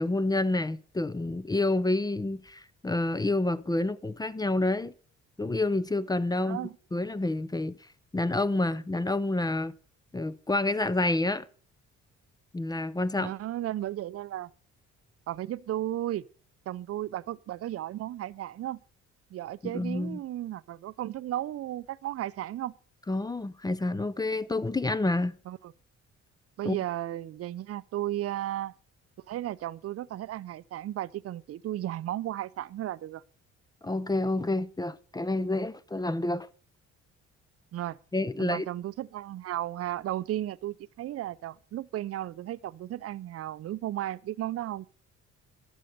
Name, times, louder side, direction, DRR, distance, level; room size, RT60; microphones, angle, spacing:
voice 1, 0.0-4.9 5.4-7.8 8.1-9.7 10.1-11.5 12.5-13.3 19.6-20.2 23.1-25.4 26.6-26.8 33.8-36.5 38.1-38.7, left 2 dB, 15° left, 0.4 m, -28 dB
voice 2, 6.4-6.7 13.2-14.5 15.3-16.3 16.7-18.8 19.3-22.7 25.5-25.7 26.6-28.7 29.3-33.2 37.7-38.0 38.4-44.9, right 13 dB, 50° right, 0.5 m, -34 dB
12.0 x 6.4 x 6.5 m
cardioid pair, 90°, 30 cm